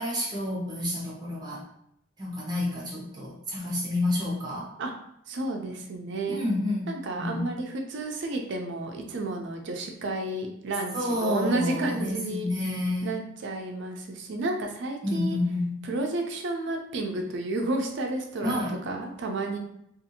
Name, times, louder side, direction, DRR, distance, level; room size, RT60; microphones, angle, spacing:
voice 1, 0.0-1.6 2.2-4.7 6.3-6.9 7.2-7.5 10.9-13.2 15.0-15.9 18.4-18.8, left 1 dB, 20° right, -5 dB, 0.8 m, -29 dB
voice 2, 5.3-6.4 6.9-10.9 11.2-12.5 13.0-15.4 15.9-19.6, right 2 dB, 60° right, 2 dB, 0.4 m, -31 dB
2.6 x 2.4 x 2.7 m, 0.76 s
head